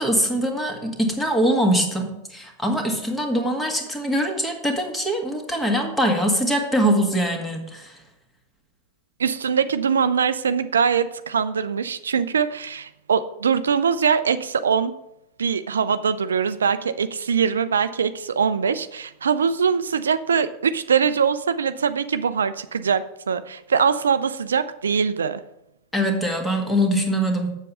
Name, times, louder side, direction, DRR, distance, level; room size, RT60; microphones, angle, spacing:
voice 1, 0.0-8.0 25.9-27.6, equal, 5° left, 3 dB, 1.8 m, -23 dB
voice 2, 9.2-14.9 15.4-25.4, right 6 dB, 70° right, 12 dB, 0.4 m, -22 dB
7.4 x 7.3 x 5.5 m, 0.84 s
figure-of-eight pair, 90°, 0 cm